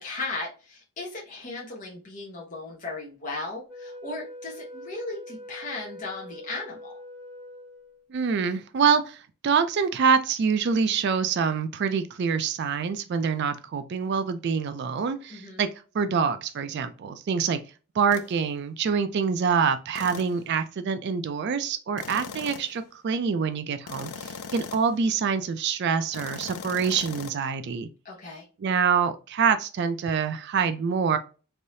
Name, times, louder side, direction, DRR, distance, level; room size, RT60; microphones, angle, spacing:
voice 1, 0.0-6.9 15.3-15.7 28.0-28.4, left 3 dB, 35° left, 0.8 m, -36 dB
Wind instrument woodwind instrument, 3.7-8.1, left 1 dB, 5° left, 1.2 m, -43 dB
voice 2, 8.1-15.7 15.9-17.6 17.9-27.9 28.6-31.2, right 6 dB, 50° right, 0.3 m, -25 dB
sound 1, 18.1-18.3 19.9-20.4 22.0-22.8 23.9-25.0 26.1-27.3, left 5 dB, 80° left, 0.4 m, -39 dB
3.3 x 2.6 x 2.6 m
head